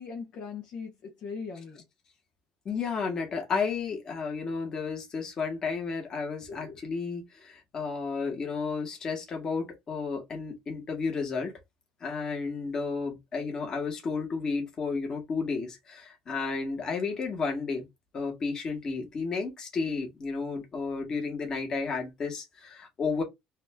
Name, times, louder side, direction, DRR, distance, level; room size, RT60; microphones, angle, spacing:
voice 1, 0.0-1.8 6.5-6.8, left 5 dB, 45° left, 1.3 m, -40 dB
voice 2, 2.7-11.5 12.0-17.9 18.1-23.2, left 4 dB, 30° left, 1.8 m, -32 dB
4.1 x 2.8 x 3.6 m
cardioid pair, 145°, 2 cm